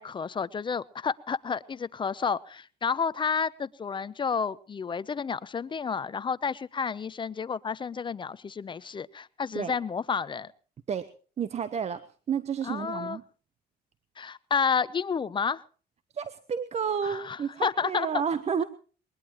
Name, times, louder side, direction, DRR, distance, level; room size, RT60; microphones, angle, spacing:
voice 1, 0.0-10.5 12.6-13.2 14.2-15.6 17.0-18.1, left 6 dB, 30° left, 18 dB, 0.7 m, -30 dB
voice 2, 11.4-12.0 12.3-13.2 16.1-18.6, right 7 dB, 40° right, 14 dB, 1.0 m, -30 dB
21.5 x 20.5 x 3.0 m, 0.39 s
cardioid pair, 110°, 17 cm